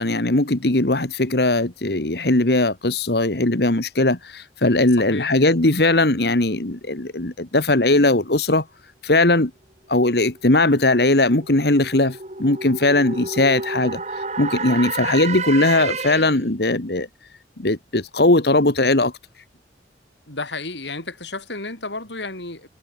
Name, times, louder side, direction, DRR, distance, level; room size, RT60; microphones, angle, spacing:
voice 1, 0.0-8.7 9.0-9.5 9.9-14.0 14.4-17.1 17.6-19.1, left 2 dB, 65° left, 1.9 m, -19 dB
voice 2, 5.0-5.3 20.3-22.7, left 3 dB, 90° left, 7.8 m, -32 dB
sound 1, 10.4-16.5, right 4 dB, 40° right, 6.4 m, -30 dB
head